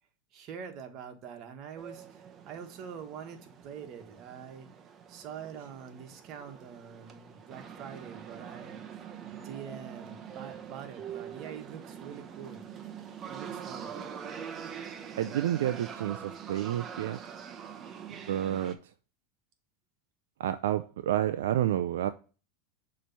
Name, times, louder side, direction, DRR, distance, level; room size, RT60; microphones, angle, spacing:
voice 1, 0.3-4.7 5.1-8.8 9.3-12.6 13.3-13.9, right 7 dB, 50° right, 1.4 m, -45 dB
sound 1, 1.8-18.7, right 8 dB, 30° right, 0.9 m, -44 dB
voice 2, 15.2-17.2 18.3-18.8 20.4-22.1, right 11 dB, 80° right, 0.4 m, -29 dB
6.7 x 3.1 x 5.7 m
hypercardioid pair, 110°, 0 cm